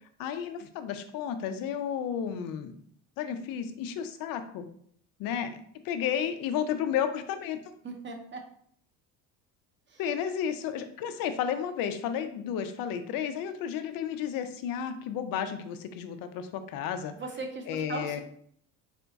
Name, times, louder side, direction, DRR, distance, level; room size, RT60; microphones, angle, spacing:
voice 1, 0.2-2.7 3.2-4.6 5.2-5.6 5.8-7.6 10.0-17.1 17.7-18.2, left 8 dB, 65° left, 9 dB, 0.7 m, -32 dB
voice 2, 7.8-8.5 9.9-10.0 17.1-18.2, right 3 dB, 30° right, 4 dB, 0.9 m, -38 dB
4.3 x 2.3 x 3.9 m, 0.62 s
supercardioid pair, 95°, 37 cm